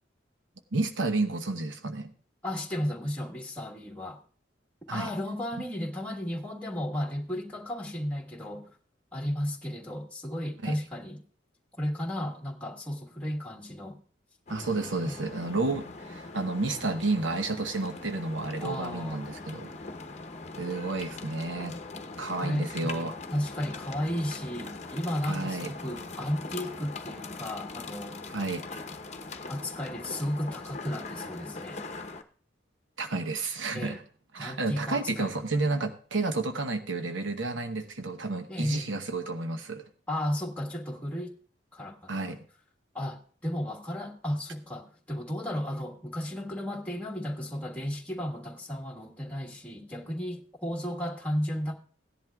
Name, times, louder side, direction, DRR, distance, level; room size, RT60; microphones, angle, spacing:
voice 1, 0.7-2.1 4.9-5.1 10.6-10.8 14.5-19.7 20.6-21.8 22.2-23.2 25.3-25.7 28.3-28.6 33.0-34.0 34.3-39.9 42.1-42.4, right 3 dB, 90° right, 0.9 m, -31 dB
voice 2, 2.4-4.2 4.9-8.8 9.1-11.2 11.8-14.0 15.0-15.2 18.6-19.3 22.4-23.0 23.3-28.2 29.5-31.8 33.7-34.0 34.4-35.6 38.5-38.9 40.1-41.3 41.7-42.4 42.9-51.7, equal, 5° left, 1.4 m, -34 dB
sound 1, 14.5-32.2, left 3 dB, 35° left, 0.9 m, -41 dB
17.5 x 11.0 x 2.3 m
head